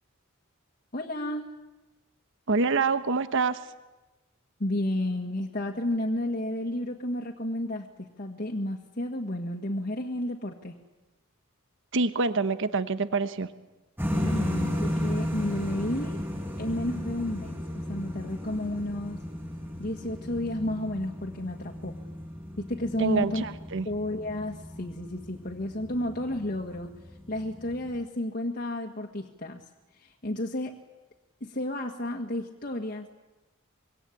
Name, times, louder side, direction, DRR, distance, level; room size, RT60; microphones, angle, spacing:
voice 1, 0.9-1.5 4.6-10.8 14.1-16.2 16.6-19.2 19.8-22.0 22.6-23.4 23.9-26.9 27.3-29.6 29.9-30.8 31.4-33.1, left 1 dB, 45° left, 0 dB, 1.9 m, -32 dB
voice 2, 2.5-3.6 11.9-13.5 23.0-23.9, right 4 dB, 65° right, 11 dB, 1.2 m, -26 dB
sound 1, 14.0-28.0, equal, 10° right, 7.8 m, -35 dB
25.5 x 23.5 x 8.7 m, 1.1 s
head